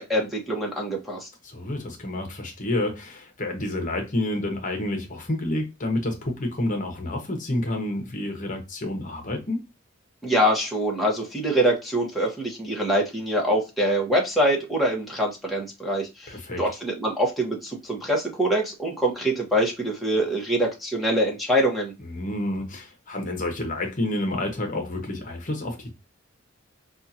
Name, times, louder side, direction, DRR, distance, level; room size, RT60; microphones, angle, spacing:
voice 1, 0.0-1.3 10.2-16.3 16.6-21.9, right 1 dB, ahead, 1.0 m, -24 dB
voice 2, 1.4-9.6 16.3-16.6 22.0-25.9, left 1 dB, 40° left, 1.0 m, -29 dB
5.4 x 2.4 x 2.8 m
head